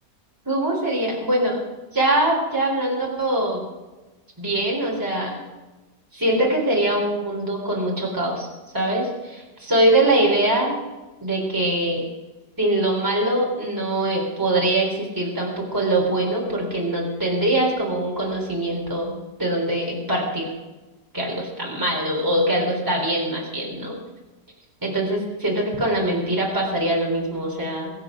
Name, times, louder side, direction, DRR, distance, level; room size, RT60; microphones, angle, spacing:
voice 1, 0.5-1.6 1.9-3.6 4.4-5.4 6.1-8.5 8.7-10.8 11.2-12.0 12.6-19.1 19.4-20.5 21.1-24.0 24.8-27.9, right 1 dB, 10° right, -1 dB, 3.7 m, -23 dB
23.0 x 8.7 x 5.1 m, 1.2 s
omnidirectional pair, 1.8 m